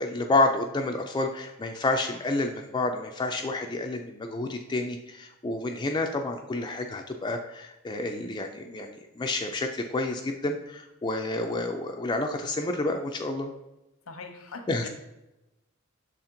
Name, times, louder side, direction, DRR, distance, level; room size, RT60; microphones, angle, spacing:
voice 1, 0.0-13.5 14.7-14.9, left 2 dB, 20° left, 3 dB, 0.4 m, -29 dB
voice 2, 14.1-14.9, left 3 dB, 90° left, 5 dB, 1.0 m, -41 dB
6.2 x 4.3 x 3.8 m, 0.96 s
head